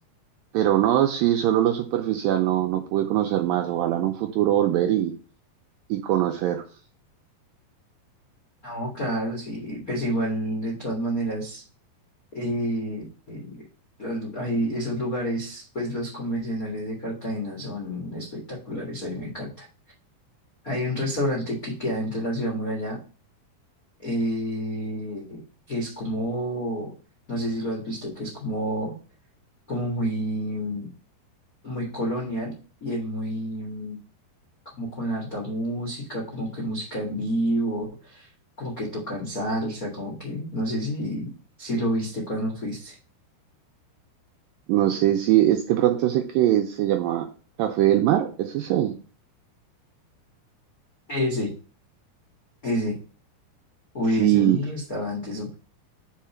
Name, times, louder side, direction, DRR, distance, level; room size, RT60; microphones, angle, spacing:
voice 1, 0.5-5.2 5.9-6.6 44.7-47.3 47.6-49.0 54.2-54.6, right 12 dB, 85° right, 4 dB, 2.0 m, -22 dB
voice 2, 8.6-11.6 12.3-13.6 14.0-19.7 20.6-23.0 24.0-25.4 25.7-26.9 27.3-28.9 29.7-30.9 31.6-32.5 32.8-34.0 34.6-38.3 38.6-41.3 41.6-43.0 51.1-51.5 52.6-53.0 53.9-55.5, equal, 60° left, -3 dB, 0.9 m, -29 dB
5.0 x 4.6 x 5.8 m, 0.37 s
omnidirectional pair, 4.6 m